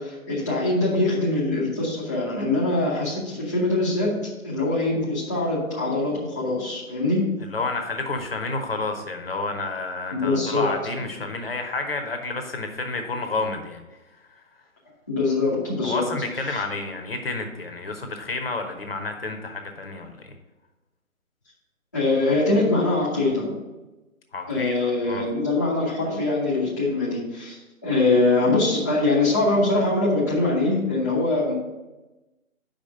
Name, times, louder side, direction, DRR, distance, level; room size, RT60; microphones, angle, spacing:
voice 1, 0.0-7.2 10.1-10.6 15.1-16.1 16.5-16.6 21.9-23.5 24.5-27.6 27.8-31.5, left 2 dB, 15° left, -10 dB, 0.7 m, -23 dB
voice 2, 7.4-13.8 14.3-14.4 15.8-20.3 24.3-25.2, left 3 dB, 45° left, 4 dB, 0.9 m, -30 dB
5.2 x 5.0 x 6.5 m, 1.1 s
figure-of-eight pair, 155°, 42 cm